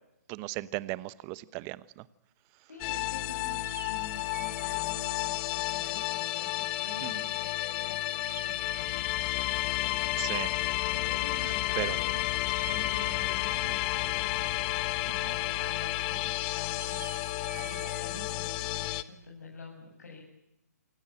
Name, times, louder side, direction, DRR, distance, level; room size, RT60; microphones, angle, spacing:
voice 1, 0.3-1.8 7.0-7.1 10.2-10.5 11.8-12.0 15.2-15.3, right 20 dB, 30° right, 18 dB, 1.0 m, -35 dB
voice 2, 2.7-10.2 10.9-12.2 12.7-14.6 15.0-17.1 17.5-20.2, left 3 dB, 70° left, -1 dB, 7.7 m, -48 dB
sound 1, 2.8-19.0, left 17 dB, 30° left, 1.3 m, -31 dB
sound 2, 3.6-4.8 8.2-9.3 12.5-13.7 16.8-18.0, right 4 dB, 85° right, 3.1 m, -46 dB
28.0 x 18.0 x 8.8 m, 0.84 s
hypercardioid pair, 135°, 9 cm